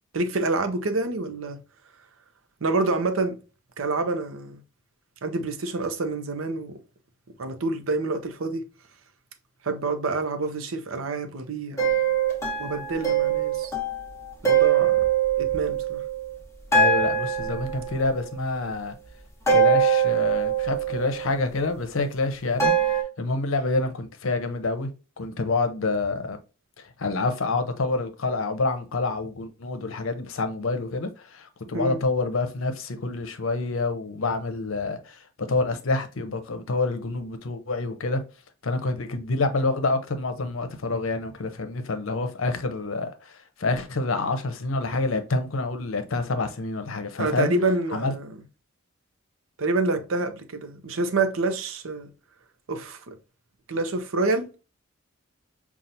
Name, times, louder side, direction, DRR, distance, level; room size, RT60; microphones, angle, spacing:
voice 1, 0.1-1.6 2.6-3.4 3.8-4.6 5.2-6.7 7.4-8.6 9.6-11.9 12.6-13.7 14.4-15.0 15.4-16.0 31.7-32.0 47.2-48.2 49.6-52.1 52.7-53.2 53.7-54.5, right 3 dB, 75° right, 0.7 m, -27 dB
sound 1, 11.8-16.4 16.7-18.3 19.5-21.5 22.6-23.0, right 6 dB, 15° left, 0.9 m, -23 dB
voice 2, 16.7-19.0 19.5-24.9 25.2-26.4 26.8-38.2 38.6-47.5 47.9-48.1, left 3 dB, 70° left, 0.7 m, -27 dB
5.6 x 2.4 x 2.6 m
head